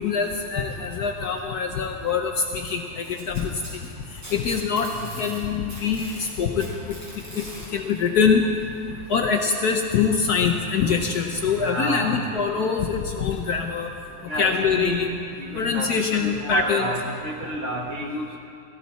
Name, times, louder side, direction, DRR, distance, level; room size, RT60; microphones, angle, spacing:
voice 1, 0.0-3.5 4.3-4.9 5.2-7.0 7.3-7.4 7.7-8.4 9.1-13.9 14.4-15.1 15.5-16.9, left 6 dB, 60° left, 3 dB, 1.2 m, -24 dB
Packing tape duct tape, 3.0-5.4 5.7-7.7 8.8-8.9 9.4-9.5 10.4-10.5, right 1 dB, 70° right, 5.1 m, -41 dB
voice 2, 11.5-12.2 14.3-15.1 15.4-18.4, equal, 40° right, -2 dB, 2.1 m, -30 dB
17.5 x 16.0 x 4.1 m, 2.6 s
omnidirectional pair, 2.1 m